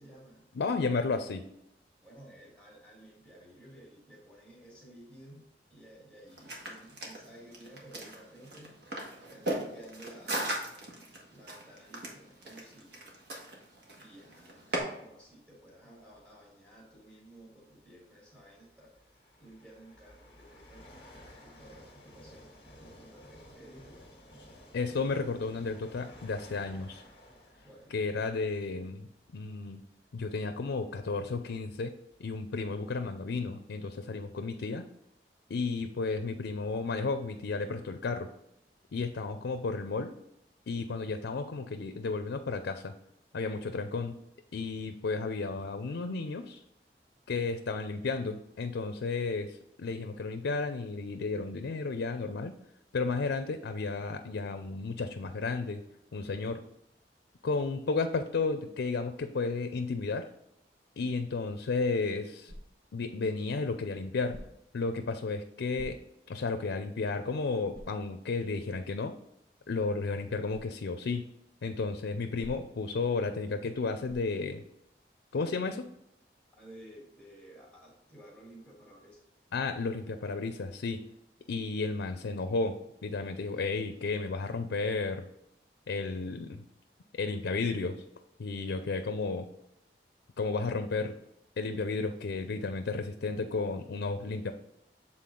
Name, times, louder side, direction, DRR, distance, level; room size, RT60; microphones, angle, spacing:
voice 1, 0.0-0.5 2.0-8.8 9.3-10.7 11.3-13.0 13.9-19.0 19.4-24.2 27.6-27.9 76.5-79.2, right 1 dB, ahead, -7 dB, 1.8 m, -54 dB
voice 2, 0.6-1.4 24.7-27.0 27.9-29.8 30.1-31.9 32.2-34.8 35.5-38.3 38.9-40.1 40.7-42.9 43.3-44.2 44.5-46.6 47.3-52.5 52.9-55.8 56.1-56.6 57.4-60.3 61.0-62.5 62.9-64.4 64.7-66.0 66.3-69.2 69.7-71.3 71.6-74.6 75.3-75.9 79.5-81.0 81.5-85.2 85.9-86.6 87.2-88.0 88.4-89.5 90.4-91.2 91.6-94.5, left 4 dB, 85° left, 8 dB, 0.4 m, -33 dB
sound 1, 6.3-14.8, right 1 dB, 75° right, 1.5 m, -38 dB
sound 2, 16.0-16.3 17.4-17.5 18.3-29.7 30.3-30.4 31.2-31.3 31.5-33.1, left 1 dB, 30° left, 1.4 m, -55 dB
sound 3, 62.4-63.0 64.3-64.8 65.7-66.4 66.9-67.0 67.7-68.1 70.5-70.7 72.4-72.9 74.0-74.4, equal, 40° right, 1.4 m, -48 dB
7.5 x 3.9 x 3.8 m, 0.82 s
head